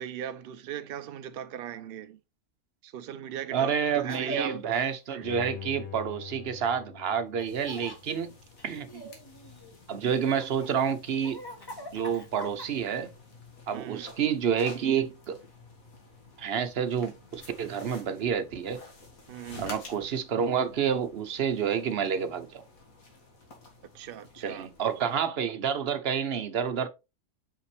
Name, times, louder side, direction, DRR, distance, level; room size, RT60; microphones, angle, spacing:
voice 1, 0.0-2.2 2.8-4.6 5.1-5.3 8.9-9.0 13.7-14.1 19.3-19.7 23.9-24.7, right 10 dB, 80° right, 0.5 m, -39 dB
voice 2, 3.5-8.3 8.6-8.9 9.9-11.4 11.9-13.1 13.7-15.4 16.4-18.8 19.6-22.6 24.4-26.9, right 7 dB, 50° right, 0.9 m, -29 dB
Laughter, 4.0-4.9 7.4-8.0 8.6-9.8 10.4-13.0, right 1 dB, 20° left, 0.9 m, -41 dB
Bowed string instrument, 5.2-8.3 8.7-8.8, left 9 dB, 85° left, 0.3 m, -44 dB
sound 1, 7.4-25.1, left 2 dB, 65° left, 2.2 m, -51 dB
5.9 x 5.5 x 3.3 m
omnidirectional pair, 1.6 m